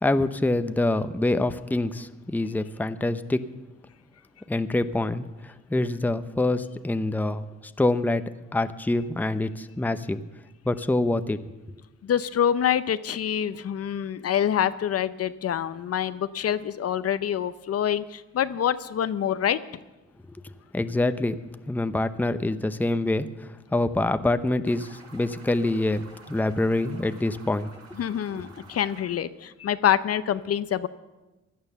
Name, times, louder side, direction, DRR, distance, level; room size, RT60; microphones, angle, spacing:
voice 1, 0.0-3.4 4.5-7.5 7.8-8.2 8.5-10.2 10.6-11.4 20.4-27.7 28.4-28.5, left 2 dB, 5° left, 11 dB, 0.7 m, -26 dB
voice 2, 12.0-19.6 28.0-30.9, left 9 dB, 55° left, 13 dB, 0.7 m, -26 dB
sound 1, 24.7-29.1, right 3 dB, 55° right, 4.3 m, -50 dB
16.5 x 11.0 x 6.8 m, 1.1 s
cardioid pair, 90°, 30 cm